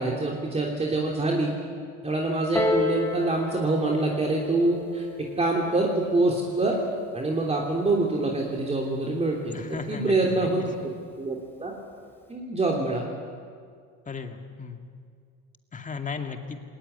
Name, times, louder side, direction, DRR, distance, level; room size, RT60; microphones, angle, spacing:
voice 1, 0.0-1.5 2.0-6.8 7.1-11.7 12.3-13.1, right 2 dB, 20° right, -1 dB, 3.1 m, -26 dB
Piano, 2.5-7.7 8.6-8.7, left 2 dB, 5° left, 4.8 m, -32 dB
voice 2, 9.5-10.5 14.1-14.8 15.7-16.6, left 5 dB, 25° left, 5 dB, 2.3 m, -35 dB
20.0 x 19.0 x 9.9 m, 2.1 s
supercardioid pair, 105°, 33 cm